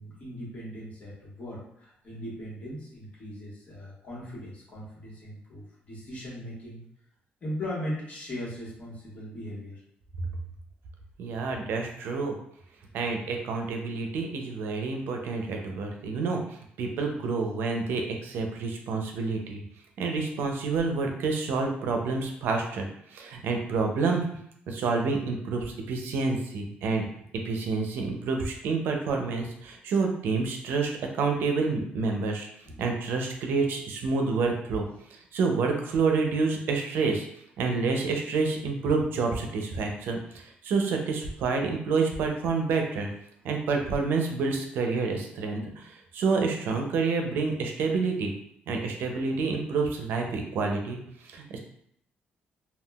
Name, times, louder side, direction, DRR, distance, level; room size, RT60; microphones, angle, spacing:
voice 1, 0.0-6.8 7.4-9.8 32.6-32.8, equal, 40° left, -6 dB, 1.3 m, -38 dB
voice 2, 11.2-12.4 12.9-19.6 20.0-24.2 24.7-27.1 27.4-32.5 32.8-34.9 35.3-37.3 37.6-43.1 43.4-48.3 48.7-51.6, right 4 dB, 75° right, 3 dB, 0.5 m, -28 dB
3.6 x 2.3 x 2.3 m, 0.71 s
cardioid pair, 150°, 4 cm